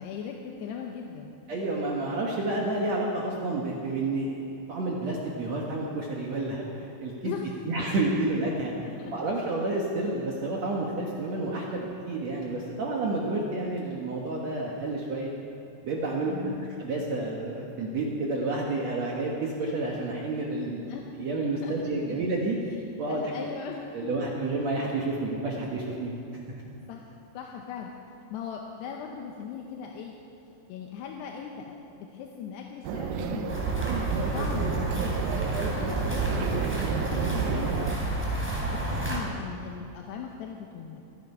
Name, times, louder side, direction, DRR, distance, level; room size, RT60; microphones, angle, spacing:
voice 1, 0.0-1.4 7.2-7.5 8.8-9.3 10.0-10.1 16.3-16.8 20.9-21.1 21.6-21.8 22.1-22.2 22.7-22.8 23.1-24.3 26.9-27.0 27.3-27.9 28.3-30.1 30.7-33.7 34.3-35.1 35.6-38.1 38.7-41.0, left 7 dB, 80° left, 1 dB, 2.9 m, -39 dB
voice 2, 1.5-7.4 7.6-8.7 9.1-15.3 15.8-16.5 16.8-20.9 21.2-22.6 23.0-23.2 23.9-26.1 33.8-34.1, right 2 dB, 65° right, -2 dB, 1.7 m, -30 dB
sound 1, 32.8-38.0, right 8 dB, 80° right, 2.2 m, -31 dB
sound 2, 33.5-39.2, right 1 dB, 5° right, 2.4 m, -30 dB
24.0 x 9.2 x 5.5 m, 2.7 s
omnidirectional pair, 4.9 m